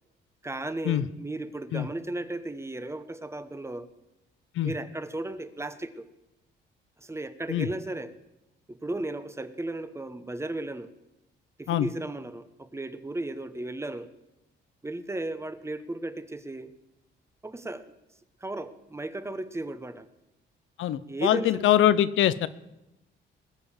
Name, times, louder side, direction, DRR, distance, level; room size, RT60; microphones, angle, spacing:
voice 1, 0.4-3.9 4.6-6.0 7.0-8.1 8.7-10.9 11.6-14.1 14.8-16.7 17.4-17.9 18.4-20.1 21.1-21.7, right 2 dB, 15° right, 12 dB, 1.0 m, -35 dB
voice 2, 20.8-22.5, left 12 dB, 75° left, 16 dB, 0.7 m, -23 dB
20.5 x 6.9 x 7.3 m, 0.95 s
cardioid pair, 90°, 20 cm